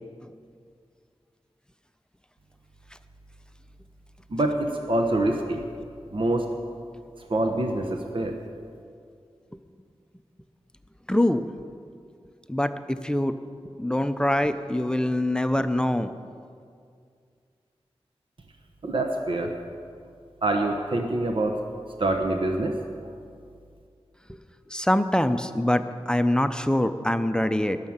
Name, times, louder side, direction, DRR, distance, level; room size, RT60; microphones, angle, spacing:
voice 1, 4.3-5.6 6.1-6.5 7.3-8.4 18.8-19.5 20.4-21.6 22.0-22.8, right 2 dB, 55° right, 3 dB, 1.1 m, -25 dB
voice 2, 11.1-11.5 12.5-13.4 13.8-16.1 24.3-24.4 24.7-27.8, left 1 dB, 10° left, 9 dB, 0.6 m, -24 dB
19.5 x 6.6 x 7.3 m, 2.3 s
wide cardioid pair, 70°, 11 cm